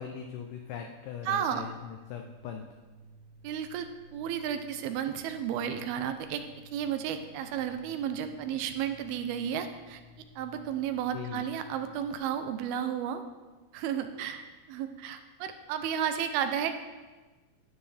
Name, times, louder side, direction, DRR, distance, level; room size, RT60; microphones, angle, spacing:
voice 1, 0.0-2.6 11.1-11.4, left 8 dB, 85° left, 4 dB, 1.9 m, -40 dB
voice 2, 1.3-1.7 3.4-6.4 6.7-10.0 10.4-13.2 13.7-16.7, right 9 dB, 80° right, 8 dB, 2.5 m, -33 dB
sound 1, 1.5-12.1, right 1 dB, 55° left, 2.1 m, -56 dB
12.5 x 9.1 x 3.4 m, 1.2 s
omnidirectional pair, 4.6 m